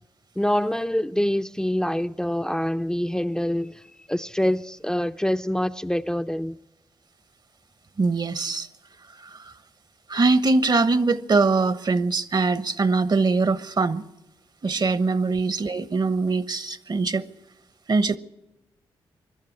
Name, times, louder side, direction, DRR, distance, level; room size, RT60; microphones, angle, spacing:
voice 1, 0.4-6.6 15.2-15.3, equal, 5° left, 0.6 m, -25 dB
voice 2, 8.0-8.7 9.3-9.4 10.1-14.0 14.6-17.2 17.9-18.2, right 3 dB, 45° right, 1.0 m, -22 dB
22.0 x 12.0 x 9.7 m
supercardioid pair, 40°, 10 cm